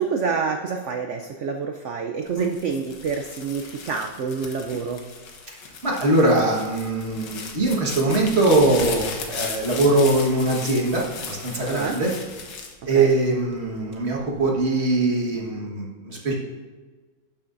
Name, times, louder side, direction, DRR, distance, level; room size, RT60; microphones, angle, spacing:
voice 1, 0.0-5.0 11.7-12.0 12.9-13.1, right 5 dB, 80° right, 4 dB, 0.6 m, -27 dB
sound 1, 2.3-13.6 14.2-14.7, left 5 dB, 75° left, 1.6 m, -37 dB
voice 2, 5.8-12.1 12.8-16.3, right 2 dB, 40° right, -2 dB, 1.6 m, -21 dB
11.5 x 7.1 x 2.6 m, 1.3 s
omnidirectional pair, 1.9 m